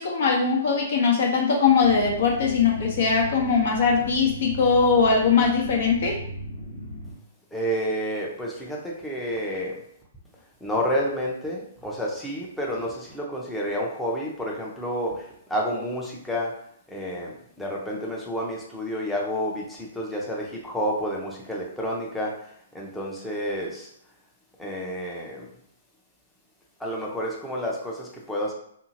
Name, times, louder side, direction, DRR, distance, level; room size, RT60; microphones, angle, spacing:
voice 1, 0.0-6.2, left 5 dB, 60° left, 0 dB, 0.8 m, -21 dB
sound 1, 1.8-7.1, equal, 80° left, 1.4 m, -37 dB
voice 2, 7.5-9.8 10.6-15.2 15.5-16.5 16.9-17.3 17.6-19.6 20.0-22.3 22.7-23.9 24.6-25.4 26.8-28.5, equal, 5° left, -3 dB, 0.6 m, -29 dB
2.7 x 2.4 x 2.7 m, 0.68 s
hypercardioid pair, 125°, 0 cm